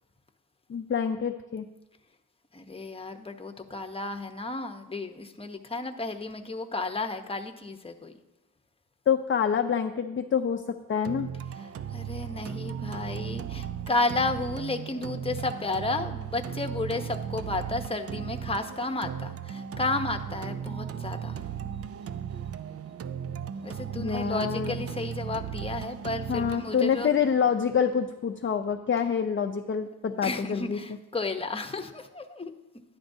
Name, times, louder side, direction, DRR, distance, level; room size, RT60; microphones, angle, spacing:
voice 1, 0.7-1.6 9.1-11.3 24.0-24.8 26.3-30.8, left 7 dB, 35° left, 5 dB, 0.5 m, -27 dB
voice 2, 2.5-8.1 11.9-21.5 23.6-27.1 30.2-32.5, left 2 dB, 15° left, 5 dB, 0.9 m, -32 dB
sound 1, 11.0-29.0, right 8 dB, 40° right, 0.4 m, -37 dB
11.5 x 9.9 x 2.7 m, 1.0 s
cardioid pair, 75°, 37 cm